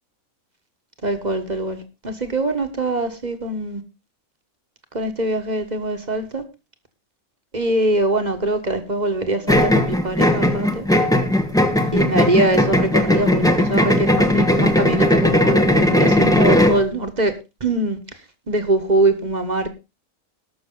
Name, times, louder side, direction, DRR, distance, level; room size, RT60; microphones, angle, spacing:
voice 1, 1.0-3.8 4.9-6.4 7.5-10.8 11.9-18.0 18.5-19.7, right 2 dB, 30° right, 1.5 m, -23 dB
sound 1, 9.5-16.8, left 1 dB, 5° left, 1.0 m, -17 dB
19.5 x 6.5 x 3.8 m
omnidirectional pair, 1.6 m